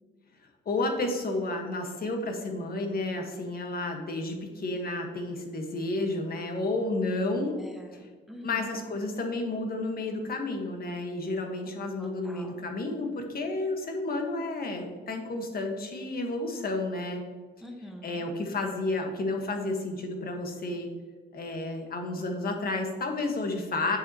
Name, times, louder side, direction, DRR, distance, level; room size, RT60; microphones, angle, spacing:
voice 1, 0.6-7.6 7.9-8.1 8.4-17.2 18.0-20.9 21.3-24.0, left 2 dB, 50° left, 3 dB, 1.5 m, -31 dB
voice 2, 7.6-8.8 12.0-12.6 17.6-18.2, equal, ahead, 1 dB, 1.3 m, -45 dB
8.1 x 7.0 x 3.0 m, 1.4 s
cardioid pair, 90°, 20 cm